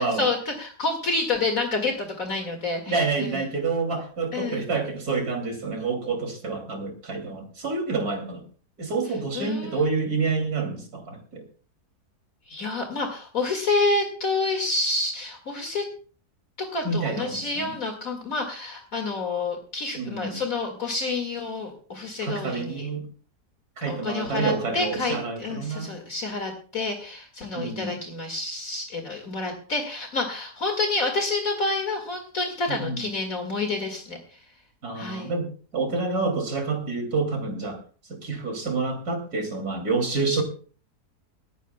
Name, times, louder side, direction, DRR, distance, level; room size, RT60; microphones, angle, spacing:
voice 1, 0.0-3.4 4.3-4.7 9.3-9.8 12.5-15.8 16.6-22.9 23.9-34.4 34.9-35.3, left 3 dB, 60° left, 3 dB, 2.5 m, -28 dB
voice 2, 2.9-8.4 8.8-11.5 16.8-17.7 20.0-20.4 22.2-23.1 23.8-25.9 27.5-27.9 32.7-33.1 34.8-37.8 38.1-40.4, right 4 dB, 70° right, 4 dB, 3.3 m, -28 dB
18.5 x 15.5 x 2.2 m, 0.39 s
omnidirectional pair, 1.7 m